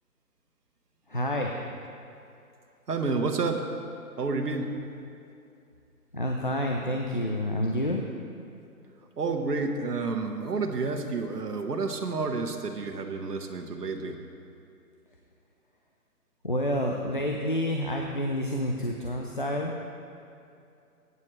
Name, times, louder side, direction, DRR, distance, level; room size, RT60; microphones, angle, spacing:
voice 1, 1.1-1.5 6.1-8.0 16.4-19.8, left 1 dB, 35° left, 1 dB, 0.5 m, -28 dB
voice 2, 2.9-3.7 4.2-4.8 9.2-14.2, right 4 dB, 90° right, 3 dB, 1.4 m, -30 dB
16.5 x 9.5 x 3.2 m, 2.6 s
hypercardioid pair, 170°, 46 cm